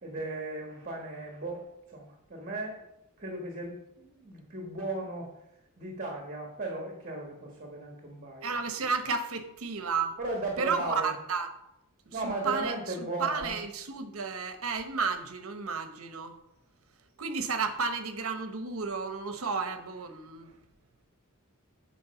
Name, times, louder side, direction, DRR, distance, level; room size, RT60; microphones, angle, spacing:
voice 1, 0.0-2.9 3.2-5.3 5.8-8.6 10.2-11.1 12.1-13.6, right 2 dB, 35° right, 1 dB, 1.5 m, -36 dB
voice 2, 8.4-10.2 10.6-11.5 12.1-16.3 17.2-20.5, right 5 dB, 70° right, 8 dB, 1.0 m, -32 dB
8.6 x 4.6 x 6.9 m, 0.83 s
head